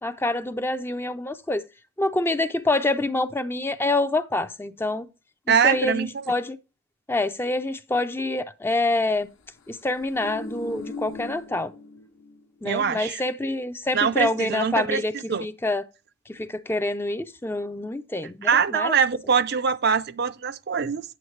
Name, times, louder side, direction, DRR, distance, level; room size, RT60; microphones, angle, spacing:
voice 1, 0.0-1.6 2.0-5.1 5.5-6.6 7.1-9.3 9.7-11.7 12.6-15.1 15.4-15.8 16.3-18.9, left 2 dB, 10° left, 0.4 m, -26 dB
voice 2, 5.5-6.1 12.6-13.2 13.9-15.0 15.3-15.5 18.4-21.0, right 6 dB, 50° right, 0.4 m, -23 dB
sound 1, 9.8-12.4 12.7-12.9, left 2 dB, 70° left, 1.0 m, -39 dB
9.0 x 7.9 x 3.2 m
head